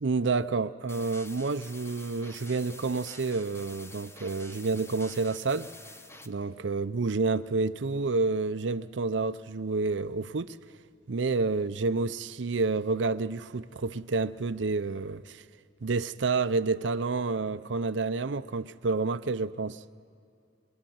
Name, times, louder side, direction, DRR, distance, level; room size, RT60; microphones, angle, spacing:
voice 1, 0.0-5.7 6.2-10.6 11.1-15.4 15.8-19.8, right 3 dB, 80° right, 0.6 m, -29 dB
sound 1, 0.9-6.3, left 2 dB, 15° left, 1.1 m, -48 dB
24.0 x 24.0 x 9.3 m
head